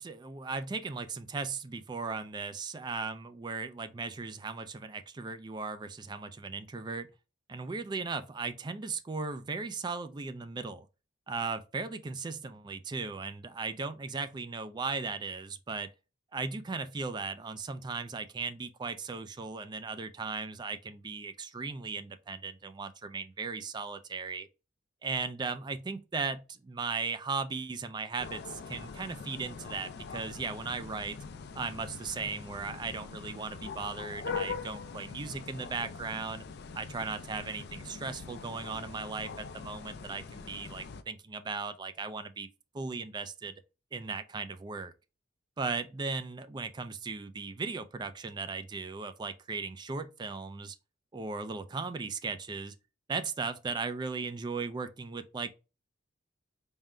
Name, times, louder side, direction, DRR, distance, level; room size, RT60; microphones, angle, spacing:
voice 1, 0.0-7.1 7.5-10.9 11.3-15.9 16.3-24.5 25.0-31.2 31.5-36.4 36.7-42.5 42.7-43.5 43.9-44.9 45.6-50.8 51.1-52.7 53.1-55.5, right 4 dB, 20° right, 0.3 m, -37 dB
sound 1, 28.2-41.0, left 5 dB, 55° left, 0.4 m, -43 dB
4.1 x 3.6 x 2.2 m
head